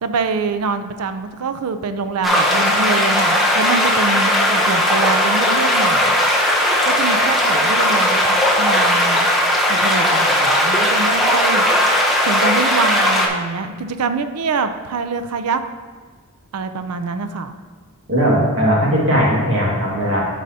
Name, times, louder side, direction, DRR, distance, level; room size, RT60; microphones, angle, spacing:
voice 1, 0.0-6.1 6.8-9.3 9.6-11.6 12.2-15.6 16.5-17.5, right 4 dB, 90° right, 9 dB, 0.5 m, -24 dB
sound 1, 2.2-13.3, left 1 dB, ahead, 0.7 m, -17 dB
voice 2, 18.1-20.2, equal, 60° right, -4 dB, 1.9 m, -17 dB
12.0 x 4.8 x 2.7 m, 1.4 s
head